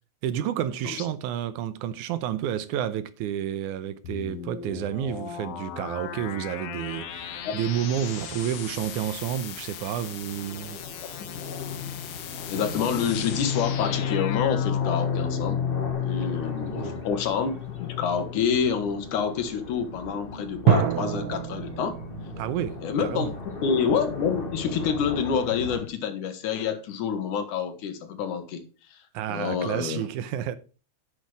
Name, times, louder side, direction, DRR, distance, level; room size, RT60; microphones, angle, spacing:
voice 1, 0.2-11.2 16.6-17.1 22.4-23.3 29.1-30.6, right 10 dB, 85° right, 2.2 m, -30 dB
sound 1, 4.0-15.9, left 8 dB, 60° left, 1.8 m, -38 dB
sound 2, 6.9-25.8, left 6 dB, 30° left, 1.0 m, -34 dB
voice 2, 12.5-15.6 16.0-22.0 22.8-23.3 23.6-28.6 28.9-29.0 29.3-30.1, left 7 dB, 80° left, 2.8 m, -28 dB
sound 3, 12.5-15.5 16.1-16.4 20.7-25.0, right 8 dB, 70° right, 2.5 m, -31 dB
10.0 x 6.3 x 4.7 m
omnidirectional pair, 3.5 m